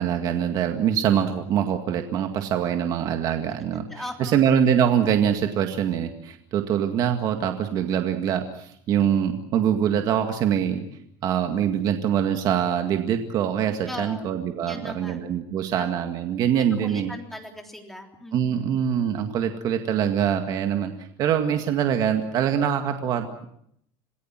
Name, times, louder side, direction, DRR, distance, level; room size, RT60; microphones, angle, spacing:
voice 1, 0.0-3.9 4.2-10.8 11.2-17.1 18.3-20.9 21.2-23.5, right 9 dB, 45° right, 5 dB, 2.0 m, -24 dB
voice 2, 3.9-4.4 13.8-14.4 14.6-15.2 15.8-15.9 16.5-18.8, left 1 dB, ahead, 2 dB, 3.5 m, -38 dB
27.0 x 19.5 x 7.5 m, 0.71 s
cardioid pair, 150°, 9 cm